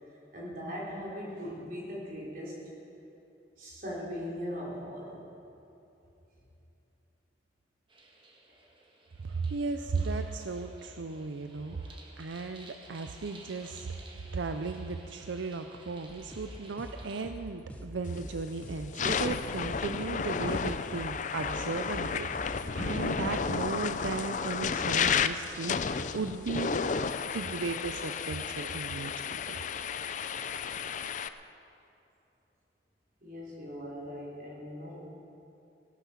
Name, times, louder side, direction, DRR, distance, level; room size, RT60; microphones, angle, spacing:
voice 1, 0.3-2.6 3.6-5.2 33.2-35.1, equal, 50° right, -5 dB, 4.1 m, -39 dB
sound 1, 7.9-17.3, right 2 dB, 25° right, 1.5 m, -54 dB
voice 2, 9.2-14.0 14.3-26.8 27.3-29.6, right 4 dB, 85° right, 7 dB, 0.5 m, -36 dB
sound 2, 16.1-23.5, equal, 10° left, 0.9 m, -45 dB
sound 3, 18.1-18.3 18.8-31.3, left 6 dB, 40° left, 0.5 m, -32 dB
17.5 x 12.0 x 5.8 m, 2.9 s
head